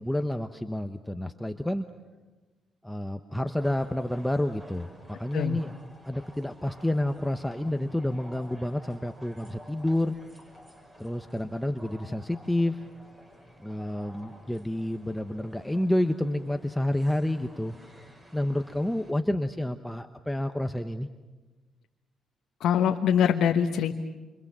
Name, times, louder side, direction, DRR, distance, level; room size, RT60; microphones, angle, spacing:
voice 1, 0.0-1.9 2.8-4.9 5.2-5.7 6.0-10.1 11.0-12.8 13.6-17.8 18.3-21.1, left 1 dB, 5° left, 7 dB, 1.0 m, -29 dB
sound 1, 3.4-19.1, equal, 25° right, 6.5 m, -52 dB
voice 2, 22.6-24.0, left 8 dB, 80° left, 3 dB, 1.2 m, -23 dB
28.0 x 25.5 x 7.5 m, 1.2 s
cardioid pair, 90°, 0 cm